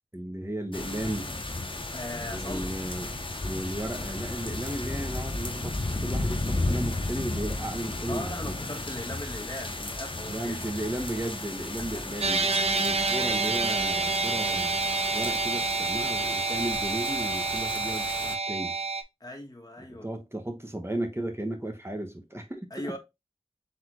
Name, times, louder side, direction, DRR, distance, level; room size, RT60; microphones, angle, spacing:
voice 1, 0.1-1.4 2.3-3.1 3.4-5.7 6.0-8.5 10.3-14.8 15.1-18.7 19.9-23.0, right 1 dB, 25° right, 1.1 m, -35 dB
sound 1, 0.7-18.4, left 2 dB, 50° left, 0.7 m, -34 dB
voice 2, 1.9-2.7 8.1-10.6 11.8-12.0 19.2-20.1 22.7-23.0, left 1 dB, 35° left, 1.4 m, -39 dB
sound 2, 12.2-19.0, right 3 dB, 70° right, 0.5 m, -28 dB
4.0 x 3.7 x 3.0 m
wide cardioid pair, 45°, 11 cm